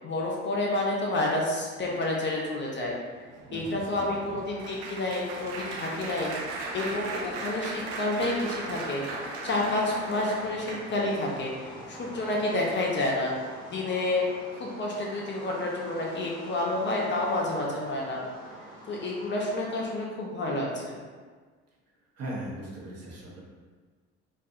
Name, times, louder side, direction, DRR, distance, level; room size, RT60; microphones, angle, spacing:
voice 1, 0.0-3.0 3.5-9.0 9.4-13.3 13.7-14.2 14.6-18.2 18.9-21.0, left 2 dB, 35° left, -2 dB, 0.6 m, -29 dB
Applause, 2.9-11.2 11.8-12.1 12.3-12.5, right 3 dB, 75° right, 0.5 m, -38 dB
voice 2, 3.4-4.2 22.2-23.4, right 1 dB, 45° right, -4 dB, 0.9 m, -39 dB
sound 1, 6.4-20.0, equal, 15° left, 0.9 m, -45 dB
2.6 x 2.4 x 2.4 m, 1.5 s
hypercardioid pair, 70°, 33 cm